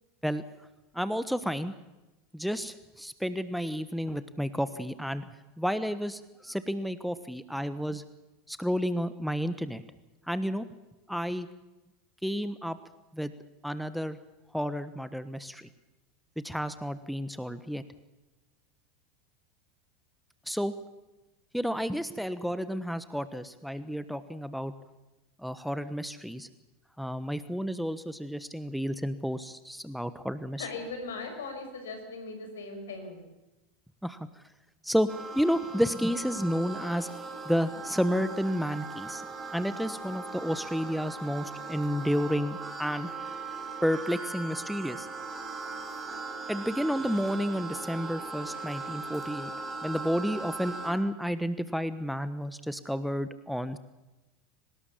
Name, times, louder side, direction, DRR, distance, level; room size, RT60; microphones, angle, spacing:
voice 1, 0.9-1.7 2.3-5.3 5.6-8.0 8.5-9.8 10.3-10.7 11.1-11.5 12.2-12.8 13.1-13.3 13.6-14.2 14.5-15.7 16.4-17.8 20.5-20.7 21.5-24.7 25.4-26.5 27.0-30.7 34.0-34.3 34.8-37.1 37.4-39.2 39.5-43.1 43.8-45.1 46.5-49.5 49.8-53.8, equal, ahead, 13 dB, 1.2 m, -31 dB
voice 2, 30.6-33.2, left 3 dB, 75° left, 6 dB, 6.1 m, -39 dB
sound 1, 35.1-50.9, right 3 dB, 15° right, 5.2 m, -39 dB
24.0 x 20.0 x 7.2 m, 1.0 s
figure-of-eight pair, 80°, 0 cm